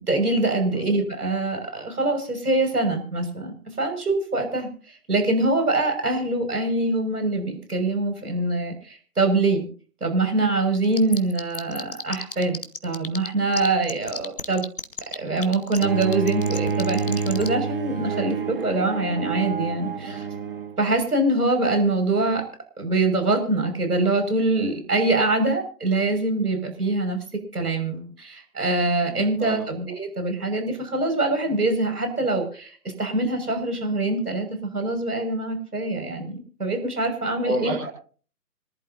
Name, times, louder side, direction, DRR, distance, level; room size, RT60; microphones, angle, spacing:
voice 1, 0.1-9.7 10.0-12.6 12.8-14.6 15.1-20.3 20.8-22.4 22.8-37.7, right 2 dB, 70° right, 5 dB, 6.3 m, -24 dB
sound 1, 10.7-13.3 13.5-17.5, left 4 dB, 35° left, 0.8 m, -32 dB
Bowed string instrument, 15.8-20.8, right 5 dB, 35° right, 1.7 m, -28 dB
voice 2, 29.0-29.6 37.4-37.9, right 2 dB, 5° right, -4 dB, 0.9 m, -28 dB
26.5 x 11.5 x 2.8 m, 0.42 s
figure-of-eight pair, 155°, 47 cm